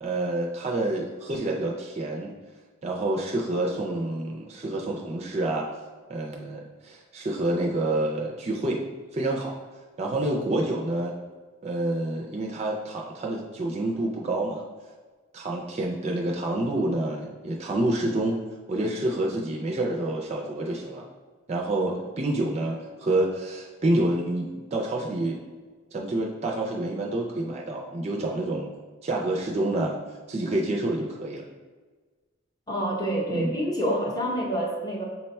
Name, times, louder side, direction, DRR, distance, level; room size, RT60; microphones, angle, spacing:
voice 1, 0.0-2.3 2.8-5.7 6.1-8.8 9.1-9.5 10.0-11.1 11.6-14.6 15.3-18.4 18.7-21.1 21.5-25.4 25.9-28.7 29.0-30.0 30.3-31.5 33.3-33.5, right 1 dB, 30° right, -1 dB, 0.4 m, -28 dB
voice 2, 32.7-35.0, right 1 dB, 15° left, -2 dB, 0.7 m, -27 dB
5.8 x 2.2 x 4.1 m, 1.4 s
head